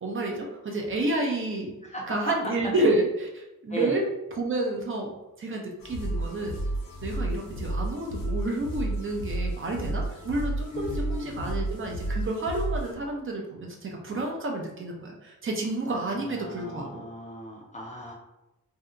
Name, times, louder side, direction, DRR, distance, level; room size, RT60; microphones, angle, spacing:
voice 1, 0.0-1.7 2.1-3.1 3.4-4.0 4.4-6.6 7.0-17.0, right 2 dB, 40° right, 0 dB, 0.5 m, -30 dB
voice 2, 1.8-2.2 2.8-2.9 3.7-4.0 10.7-11.5 15.9-18.1, equal, 20° left, -2 dB, 0.5 m, -37 dB
sound 1, 5.8-12.9, right 1 dB, 90° left, 0.8 m, -32 dB
2.7 x 2.2 x 3.7 m, 0.97 s
wide cardioid pair, 155°, 32 cm